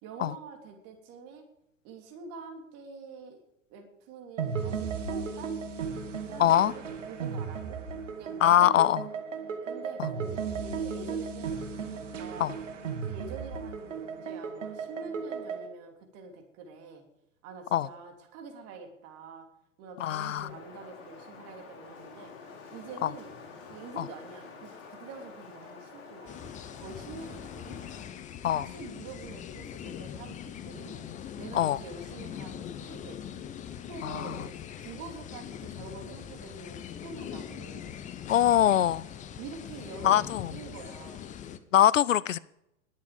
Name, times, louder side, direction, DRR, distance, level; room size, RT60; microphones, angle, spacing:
voice 1, 0.0-1.4 1.8-3.4 3.7-5.5 6.3-7.8 8.1-8.9 9.6-11.6 12.1-12.6 13.0-17.0 17.4-19.5 19.8-22.3 22.7-23.3 23.7-26.5 26.8-27.8 28.4-31.0 31.4-33.2 33.9-34.5 34.8-37.9 39.4-41.3, right 4 dB, 35° right, 3 dB, 3.2 m, -46 dB
sound 1, 4.4-15.7, right 6 dB, 65° right, 2.2 m, -35 dB
voice 2, 6.4-6.7 8.4-9.1 12.4-12.5 17.7-17.9 20.0-20.5 23.0-23.1 24.0-24.1 28.4-28.7 31.5-31.8 34.0-34.3 38.3-39.1 40.0-40.5 41.7-42.4, left 11 dB, 70° left, 22 dB, 0.5 m, -23 dB
Wind, 20.4-28.0, left 5 dB, 35° left, 4.2 m, -48 dB
sound 2, 26.3-41.6, left 9 dB, 20° left, 0.7 m, -42 dB
20.5 x 7.6 x 5.1 m, 0.83 s
figure-of-eight pair, 95°, 40 cm